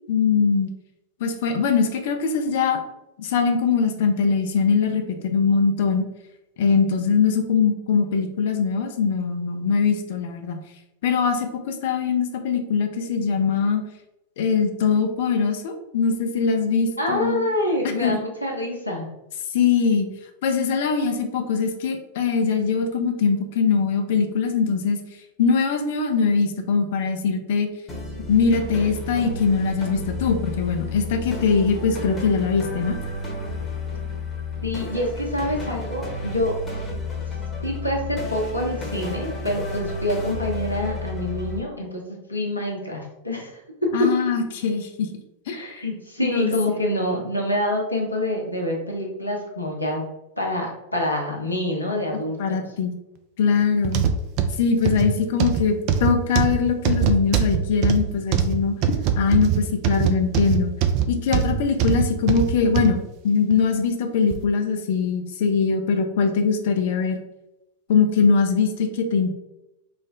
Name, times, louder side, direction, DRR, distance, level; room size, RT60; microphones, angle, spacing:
voice 1, 0.1-0.7 1.2-2.8 3.2-6.1 6.6-10.6 11.0-13.8 14.4-17.4 18.0-18.2 19.5-20.1 20.4-25.0 25.4-27.7 28.3-33.0 43.9-45.1 45.5-45.7 46.2-46.5 52.4-53.0 53.4-54.0 54.6-58.7 59.2-60.7 61.1-67.2 67.9-69.3, left 5 dB, 55° left, 5 dB, 0.5 m, -22 dB
voice 2, 17.0-19.1 34.6-36.5 37.6-43.5 43.8-44.1 45.5-50.0 50.4-52.6, left 1 dB, 85° left, -1 dB, 0.7 m, -26 dB
sound 1, 27.9-41.6, left 2 dB, 20° left, 0.9 m, -31 dB
sound 2, 53.8-63.0 63.5-63.6 64.3-64.4, right 7 dB, 45° right, 0.3 m, -22 dB
3.2 x 2.1 x 3.6 m, 0.90 s
figure-of-eight pair, 90°, 0 cm